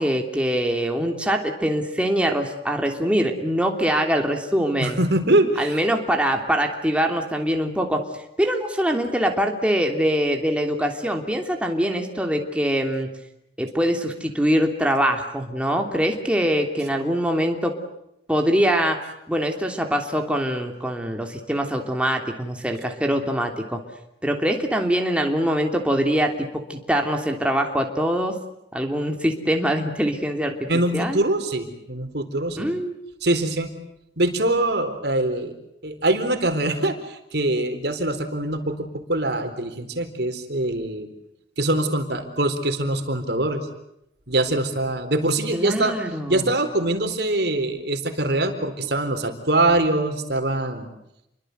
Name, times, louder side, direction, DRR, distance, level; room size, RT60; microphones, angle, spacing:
voice 1, 0.0-5.0 5.6-8.0 8.4-13.1 13.6-17.7 18.3-19.0 19.3-23.8 24.2-26.3 26.7-28.4 28.7-31.2 32.6-33.0 45.5-46.4, equal, 5° right, 3 dB, 3.1 m, -23 dB
voice 2, 4.8-5.8 30.7-32.7 33.2-33.7 34.2-35.5 35.8-41.1 41.6-43.7 44.3-45.9 46.3-50.9, right 1 dB, 65° right, 8 dB, 4.2 m, -23 dB
29.5 x 24.0 x 8.1 m, 0.82 s
head